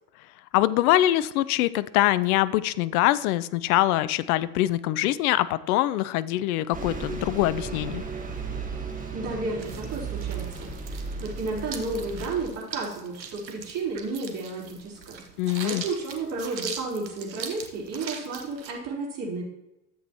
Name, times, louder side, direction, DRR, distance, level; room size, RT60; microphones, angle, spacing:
voice 1, 0.5-8.0 15.4-15.8, left 15 dB, 60° left, 17 dB, 0.6 m, -23 dB
Bus, 6.7-12.5, right 4 dB, 15° right, 1.5 m, -35 dB
voice 2, 9.1-10.7 11.2-15.2 15.6-19.4, right 3 dB, 40° right, -5 dB, 3.9 m, -32 dB
sound 1, 9.6-18.7, right 6 dB, 85° right, 1.1 m, -41 dB
13.0 x 7.9 x 3.0 m, 0.94 s
hypercardioid pair, 80°, 49 cm